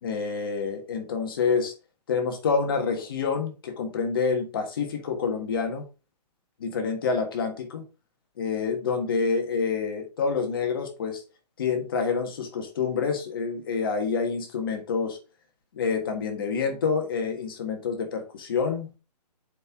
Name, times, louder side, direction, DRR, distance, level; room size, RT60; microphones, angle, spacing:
voice 1, 0.0-1.7 2.1-5.9 6.6-7.8 8.4-11.2 11.6-15.2 15.7-18.9, left 5 dB, 35° left, 1.5 m, -27 dB
7.7 x 4.6 x 3.6 m
hypercardioid pair, 175°, 21 cm